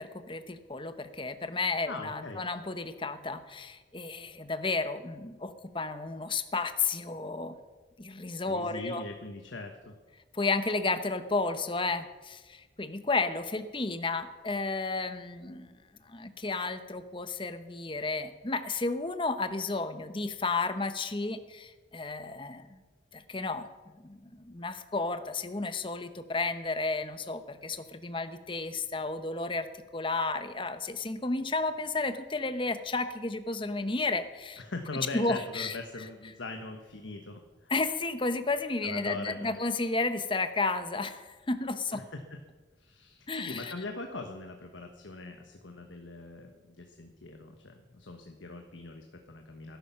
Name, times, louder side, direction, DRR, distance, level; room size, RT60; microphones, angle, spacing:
voice 1, 0.0-7.6 8.0-9.0 10.3-15.7 16.0-22.8 23.1-23.7 24.0-29.7 29.9-34.6 35.1-35.8 37.7-42.0 43.3-43.7, left 3 dB, 25° left, 10 dB, 0.9 m, -32 dB
voice 2, 1.9-2.4 8.4-9.9 34.6-37.7 38.8-39.6 41.9-42.2 42.8-49.8, left 2 dB, 90° left, 4 dB, 1.4 m, -41 dB
19.0 x 11.5 x 5.8 m, 1.3 s
head